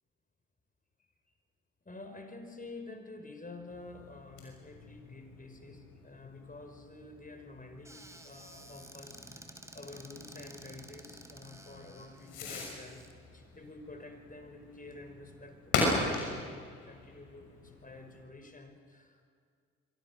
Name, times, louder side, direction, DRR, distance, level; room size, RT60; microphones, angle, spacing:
voice 1, 1.8-13.0 13.3-19.2, left 2 dB, 25° left, 5 dB, 5.2 m, -49 dB
Fireworks, 3.7-18.3, left 3 dB, 85° left, 6.3 m, -40 dB
Squeak / Cupboard open or close, 7.8-13.1, right 1 dB, 10° right, 3.7 m, -52 dB
26.5 x 24.0 x 6.6 m, 2.1 s
hypercardioid pair, 50°, 32 cm